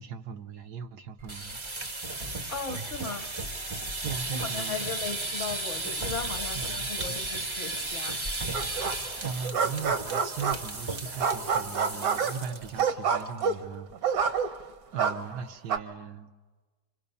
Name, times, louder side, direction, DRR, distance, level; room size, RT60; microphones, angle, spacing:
voice 1, 0.0-1.6 4.0-4.8 6.5-7.3 9.2-14.6 14.9-16.3, right 6 dB, 85° right, 6 dB, 1.5 m, -39 dB
sound 1, 1.2-12.8 13.1-13.4 13.7-13.8 14.2-14.6, right 2 dB, 30° right, 0.5 m, -35 dB
voice 2, 2.5-3.3 4.3-8.2, left 5 dB, 50° left, 8 dB, 1.1 m, -37 dB
sound 2, 8.5-9.1 9.4-10.8 11.2-14.7 15.0-15.8, right 6 dB, 70° right, 1.4 m, -28 dB
29.5 x 25.0 x 5.5 m, 1.3 s
omnidirectional pair, 1.7 m